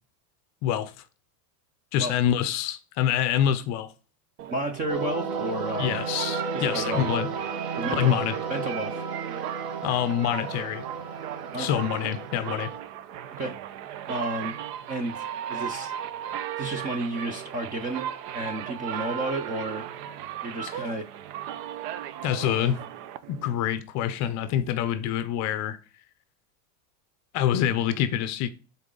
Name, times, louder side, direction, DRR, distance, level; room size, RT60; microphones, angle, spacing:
voice 1, 0.6-0.9 1.9-3.9 5.8-7.3 7.9-8.4 9.8-10.9 11.6-12.7 20.7-20.8 22.2-22.8 23.3-25.8 27.3-28.5, left 10 dB, 35° left, 0.5 m, -26 dB
sound 1, 4.4-23.8, right 10 dB, 80° right, 0.8 m, -36 dB
voice 2, 4.5-6.0 6.5-7.0 7.8-8.2 8.5-9.0 11.5-11.9 13.3-13.6 14.1-14.6 14.9-15.2 15.5-15.9 16.6-19.9 20.4-21.1, right 1 dB, 20° right, 0.4 m, -32 dB
sound 2, 4.9-12.8, right 4 dB, 45° right, 1.1 m, -34 dB
9.7 x 4.1 x 3.8 m
supercardioid pair, 155°, 47 cm